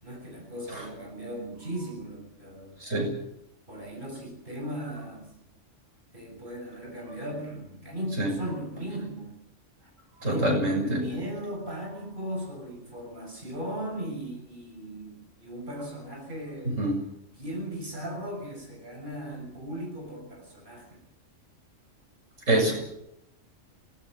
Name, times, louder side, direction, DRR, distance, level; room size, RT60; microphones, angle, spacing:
voice 1, 0.0-2.8 3.7-5.3 6.1-9.3 10.2-16.8 17.4-21.0, equal, 40° right, 1 dB, 6.9 m, -37 dB
voice 2, 2.8-3.2 8.2-8.4 10.2-11.0 16.6-17.1 22.5-22.7, right 1 dB, 80° right, 1 dB, 7.4 m, -26 dB
25.0 x 19.5 x 6.5 m, 0.79 s
omnidirectional pair, 1.3 m